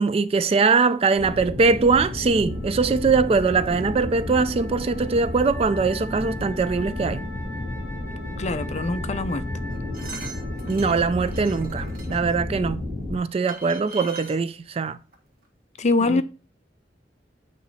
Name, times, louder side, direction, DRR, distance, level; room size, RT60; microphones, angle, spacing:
voice 1, 0.0-7.2 10.7-12.8 13.1-15.0 16.1-16.2, right 4 dB, 35° right, 0.3 m, -22 dB
sound 1, 1.1-13.2, left 1 dB, 15° right, 2.1 m, -32 dB
Wind instrument woodwind instrument, 2.4-12.8, equal, 20° left, 2.2 m, -44 dB
voice 2, 8.4-9.4 15.8-16.2, left 2 dB, 40° left, 0.5 m, -23 dB
sound 2, 9.7-12.3 13.1-13.2 13.5-14.4 15.1-15.2 15.4-15.5, right 4 dB, 55° right, 1.7 m, -40 dB
9.0 x 3.1 x 4.0 m
head